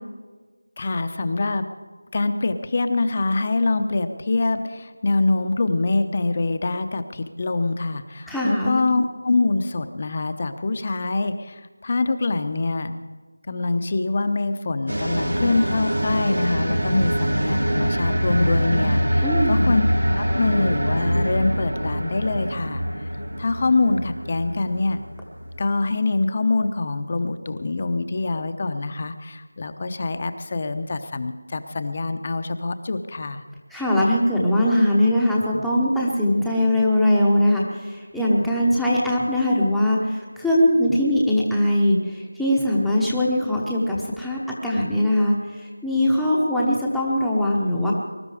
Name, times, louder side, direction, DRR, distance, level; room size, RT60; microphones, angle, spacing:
voice 1, 0.8-1.7 2.1-13.0 13.5-19.9 20.1-22.8 23.4-25.0 25.6-33.4, left 3 dB, 25° left, 9 dB, 0.8 m, -24 dB
voice 2, 8.3-8.8 19.2-19.7 33.7-47.9, left 1 dB, ahead, -6 dB, 0.9 m, -21 dB
sound 1, 14.9-25.7, equal, 85° right, 3.0 m, -24 dB
21.0 x 11.5 x 4.9 m, 1.4 s
figure-of-eight pair, 175°, 0 cm